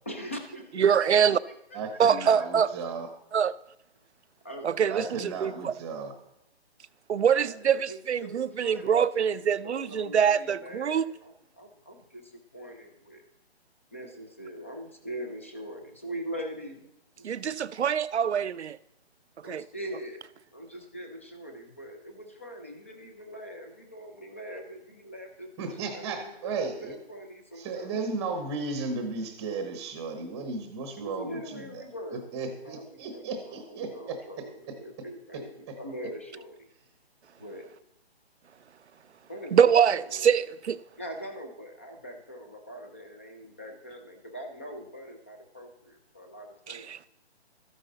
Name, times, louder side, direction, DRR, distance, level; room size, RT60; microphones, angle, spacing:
voice 1, 0.0-1.4 1.7-2.0 2.4-2.5 4.4-4.7 7.3-13.2 13.9-16.9 17.2-17.4 19.4-20.2 20.5-28.1 31.0-32.3 32.6-36.7 37.4-37.6 39.2-40.5 41.0-46.8, equal, 15° left, 0.5 m, -42 dB
voice 2, 0.8-1.4 2.0-2.7 3.3-3.5 4.6-5.7 7.1-11.1 17.2-18.8 19.5-19.6 39.5-40.8 46.7-47.1, right 7 dB, 80° right, 0.6 m, -24 dB
voice 3, 1.7-3.1 4.9-6.1 25.6-26.9 27.6-31.8 32.3-34.2 35.3-35.4 35.7-35.8, right 4 dB, 10° right, 0.9 m, -34 dB
13.5 x 9.9 x 3.9 m
hypercardioid pair, 160°, 33 cm